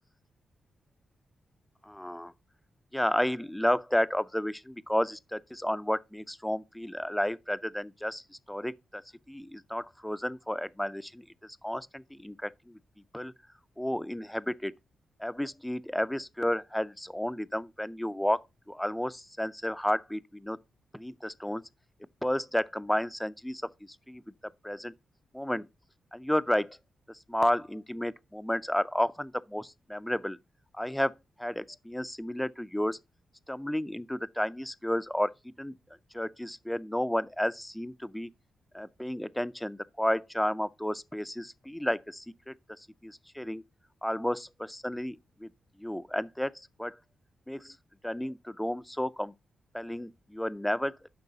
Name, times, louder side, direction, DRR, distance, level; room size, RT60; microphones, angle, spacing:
voice 1, 1.8-2.3 2.9-9.0 9.3-12.8 13.1-13.3 13.8-14.7 15.2-20.6 20.9-21.6 22.2-24.9 25.3-25.7 26.1-26.8 27.1-30.4 30.7-31.1 31.4-33.0 33.5-35.7 36.1-38.3 38.7-43.6 44.0-45.5 45.8-47.0 47.5-47.8 48.0-49.3 49.7-51.0, left 1 dB, 5° left, 0.4 m, -32 dB
10.5 x 6.1 x 2.7 m
wide cardioid pair, 130°, 0 cm